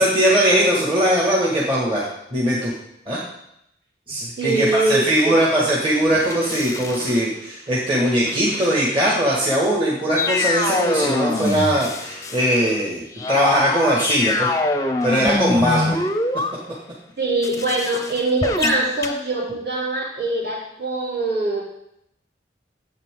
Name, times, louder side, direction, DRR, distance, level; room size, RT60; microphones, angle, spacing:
voice 1, 0.0-2.0 2.3-2.7 3.1-3.2 4.1-14.5 15.0-15.9, equal, 30° right, -5 dB, 1.9 m, -20 dB
voice 2, 4.4-5.7 17.2-21.6, right 2 dB, 60° right, -6 dB, 4.2 m, -23 dB
sound 1, 6.1-7.3 8.3-8.8 10.2-12.8 13.1-16.5 17.4-19.2, left 2 dB, 20° left, 0.6 m, -24 dB
11.0 x 8.2 x 3.8 m, 0.77 s
head